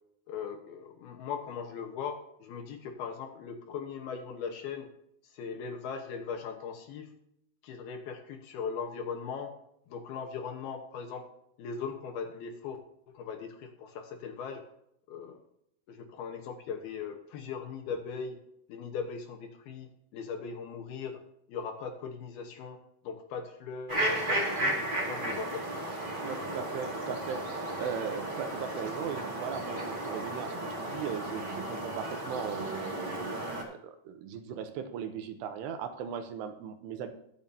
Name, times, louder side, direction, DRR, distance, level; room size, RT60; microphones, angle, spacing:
voice 1, 0.3-4.9 5.2-7.1 7.6-9.5 9.9-11.3 11.6-12.8 13.1-14.6 15.1-15.4 15.9-18.4 18.7-21.2 21.5-22.8 23.0-24.8 25.1-25.9, left 6 dB, 70° left, 4 dB, 2.7 m, -39 dB
sound 1, 23.9-33.6, right 1 dB, 40° right, 0.6 m, -34 dB
voice 2, 26.2-37.1, right 7 dB, 80° right, 8 dB, 2.8 m, -38 dB
21.0 x 7.2 x 2.8 m, 0.76 s
omnidirectional pair, 5.1 m